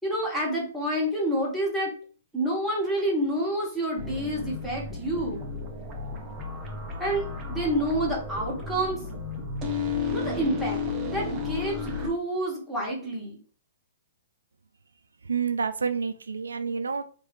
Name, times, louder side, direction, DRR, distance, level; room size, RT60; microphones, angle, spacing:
voice 1, 0.0-1.9 2.3-5.4 7.0-9.0 10.1-10.8 11.1-13.4, right 1 dB, ahead, -5 dB, 2.2 m, -28 dB
sound 1, 4.0-12.1, left 4 dB, 25° right, 1.4 m, -33 dB
voice 2, 15.3-17.0, right 5 dB, 80° right, 10 dB, 0.4 m, -28 dB
4.6 x 3.1 x 3.5 m, 0.42 s
hypercardioid pair, 120°, 0 cm